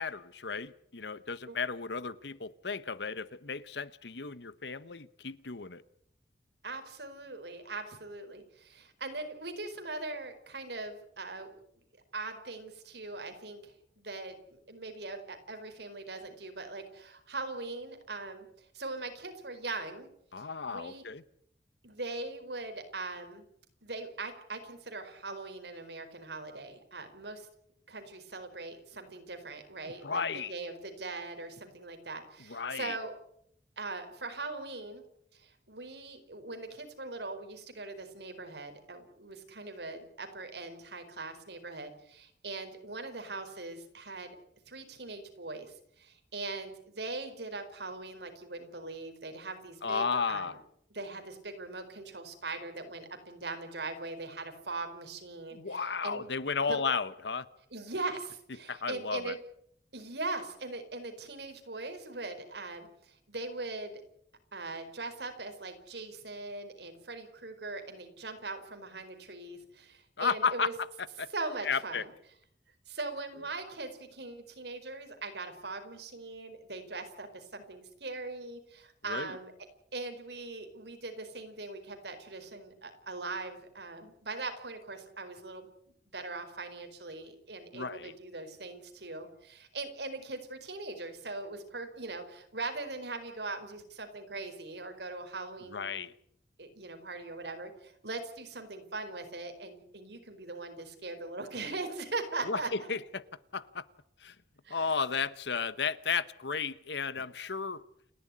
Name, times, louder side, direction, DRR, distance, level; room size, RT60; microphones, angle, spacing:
voice 1, 0.0-5.8 20.3-21.2 30.0-30.5 32.5-33.0 49.8-50.6 55.5-57.5 58.7-59.4 70.2-70.7 71.0-71.3 71.6-72.0 79.1-79.4 87.7-88.1 95.7-96.1 102.5-103.2 103.5-103.8 104.2-104.3 104.7-107.8, left 5 dB, 80° left, 1.1 m, -34 dB
voice 2, 6.6-11.6 12.1-20.1 20.4-21.0 21.8-23.4 23.8-27.5 27.9-30.2 30.5-33.1 33.8-35.0 35.3-44.4 44.7-50.6 50.9-56.2 56.6-56.8 57.7-59.4 59.9-64.0 64.5-70.7 71.3-72.1 72.9-79.5 79.9-85.7 86.1-95.8 96.6-102.9 104.6-104.9, right 3 dB, 75° right, 4.6 m, -41 dB
29.5 x 11.5 x 9.8 m
head